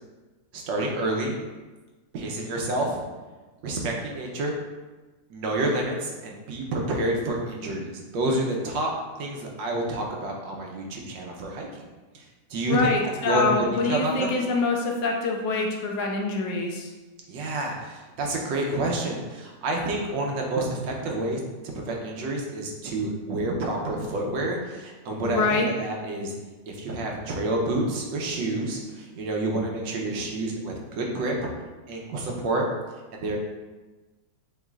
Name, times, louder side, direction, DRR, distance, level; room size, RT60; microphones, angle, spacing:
voice 1, 0.5-1.4 2.1-3.0 3.6-4.6 5.3-8.9 9.2-11.8 12.1-12.2 12.5-12.9 13.2-14.3 17.3-21.4 21.7-26.3 26.7-31.3 31.9-32.7 33.1-33.4, right 2 dB, 85° right, 0 dB, 1.5 m, -28 dB
voice 2, 12.7-16.9 25.2-25.7, left 3 dB, 80° left, 0 dB, 1.4 m, -25 dB
6.9 x 3.2 x 2.4 m, 1.2 s
omnidirectional pair, 2.0 m